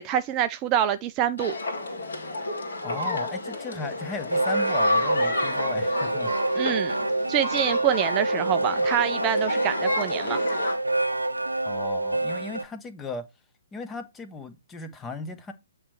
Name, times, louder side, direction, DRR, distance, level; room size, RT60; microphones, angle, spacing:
voice 1, 0.0-1.5 6.6-6.9 7.3-10.4, right 11 dB, 25° right, 0.4 m, -26 dB
sound 1, 1.4-10.8, left 2 dB, 65° left, 2.0 m, -30 dB
voice 2, 2.8-6.3 11.6-13.2 13.7-15.5, left 4 dB, 15° left, 0.9 m, -36 dB
sound 2, 3.8-12.6, right 2 dB, 85° right, 0.5 m, -27 dB
8.5 x 3.2 x 4.5 m
figure-of-eight pair, 125°, 0 cm